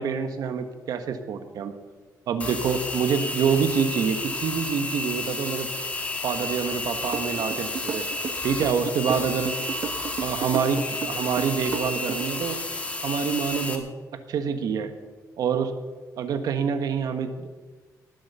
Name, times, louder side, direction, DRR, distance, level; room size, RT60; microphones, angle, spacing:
voice 1, 0.0-1.7 2.3-5.7 6.2-8.1 8.4-9.5 10.2-12.6 13.0-13.9 14.3-14.9 15.4-15.7 16.2-17.5, right 6 dB, 70° right, 8 dB, 1.4 m, -26 dB
sound 1, 2.4-13.8, left 2 dB, 20° left, 1.8 m, -31 dB
sound 2, 7.1-12.4, right 7 dB, 50° right, 1.1 m, -33 dB
19.0 x 8.0 x 6.9 m, 1.3 s
cardioid pair, 120°, 7 cm